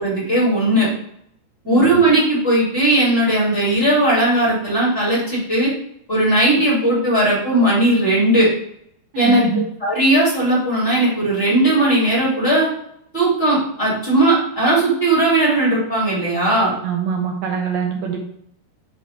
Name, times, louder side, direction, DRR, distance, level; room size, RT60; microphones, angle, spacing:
voice 1, 0.0-0.9 1.6-5.7 6.1-8.5 9.1-9.4 9.8-12.7 13.1-16.7, right 1 dB, 15° left, -7 dB, 2.6 m, -17 dB
voice 2, 9.1-9.6 16.8-18.2, right 5 dB, 90° right, 2 dB, 2.0 m, -23 dB
7.0 x 4.3 x 4.4 m, 0.72 s
omnidirectional pair, 4.8 m